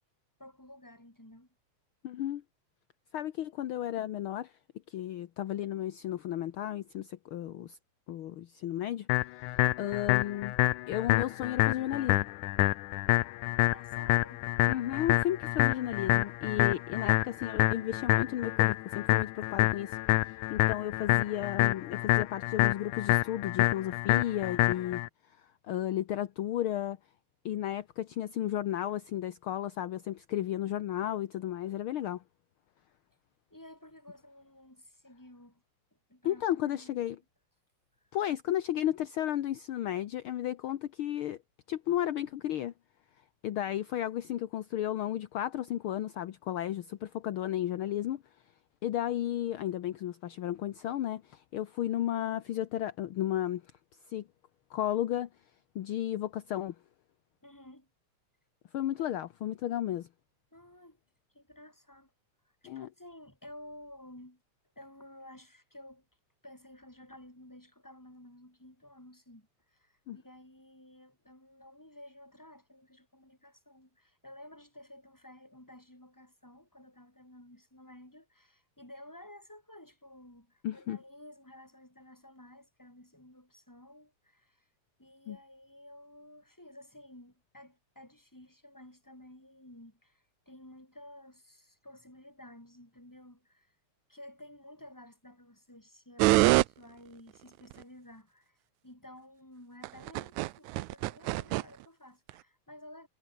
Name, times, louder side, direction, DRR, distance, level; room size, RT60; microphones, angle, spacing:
voice 1, 0.4-1.5 13.6-14.5 33.5-35.6 36.1-37.0 38.0-38.1 57.4-57.9 60.5-61.0 61.3-62.1 62.4-64.4 64.7-66.1 66.4-84.7 85.0-93.8 94.1-98.6 98.8-103.1, left 1 dB, 5° left, 4.8 m, -53 dB
voice 2, 2.0-2.4 3.1-4.5 4.9-7.8 8.1-10.5 10.9-12.3 14.7-20.0 20.3-25.0 25.3-27.0 27.4-32.2 36.2-37.2 38.1-41.4 41.7-42.7 43.4-48.2 48.8-53.6 54.1-54.3 54.7-55.3 55.7-56.7 58.7-60.1 62.7-62.9 70.1-70.2 80.6-81.0 85.3-85.4, left 12 dB, 65° left, 1.4 m, -33 dB
sound 1, 9.1-25.1, left 19 dB, 85° left, 2.1 m, -27 dB
sound 2, 96.2-96.6 97.7-97.8 99.8-101.6 102.3-102.4, right 19 dB, 80° right, 1.9 m, -23 dB
omnidirectional pair, 3.4 m